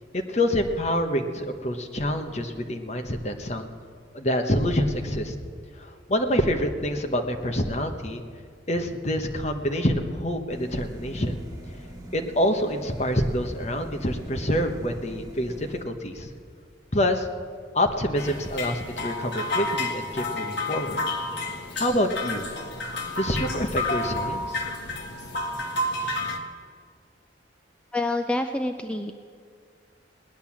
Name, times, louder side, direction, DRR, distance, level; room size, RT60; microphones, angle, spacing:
voice 1, 0.1-3.7 4.1-5.3 6.1-8.2 8.7-11.4 12.1-16.3 16.9-17.3 17.7-21.0 21.7-22.5 23.2-24.6, equal, 35° left, 5 dB, 1.1 m, -26 dB
sound 1, 10.5-15.8, right 1 dB, 20° right, 1.5 m, -43 dB
sound 2, 18.1-26.4, left 2 dB, 60° left, 1.6 m, -30 dB
voice 2, 27.9-29.1, left 2 dB, 5° left, 5 dB, 0.4 m, -27 dB
18.0 x 10.5 x 7.3 m, 2.1 s
head